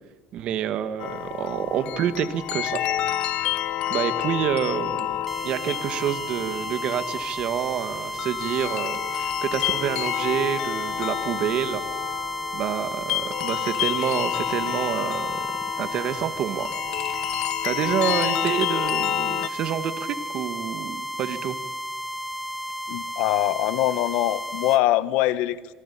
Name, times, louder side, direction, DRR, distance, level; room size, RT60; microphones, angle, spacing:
voice 1, 0.3-2.8 3.3-3.5 3.9-11.8 12.5-15.5 15.8-16.7 17.3-21.6, right 10 dB, 55° right, 11 dB, 2.0 m, -28 dB
sound 1, 1.0-19.5, left 12 dB, 60° left, 1.1 m, -29 dB
sound 2, 5.3-24.8, equal, ahead, 1.0 m, -33 dB
voice 2, 22.9-25.7, left 15 dB, 75° left, 16 dB, 1.2 m, -23 dB
27.0 x 23.0 x 8.6 m, 1.2 s
cardioid pair, 125°, 2 cm